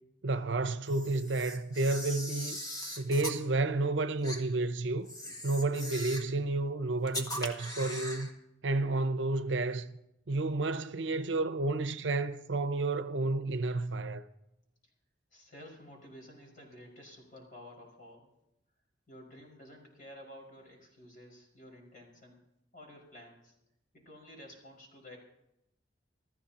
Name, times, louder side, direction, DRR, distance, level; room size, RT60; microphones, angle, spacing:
voice 1, 0.2-2.6 3.0-5.1 5.4-8.3 8.6-9.9 10.3-14.3, right 2 dB, 70° right, 0.7 m, -31 dB
Camera, 0.8-3.4 4.2-4.4 5.0-6.3 7.1-8.3, equal, 20° left, 1.7 m, -40 dB
voice 2, 15.3-18.3 19.1-22.4 22.7-23.5 23.9-25.2, left 1 dB, 45° left, 5.4 m, -52 dB
28.0 x 14.5 x 2.9 m
head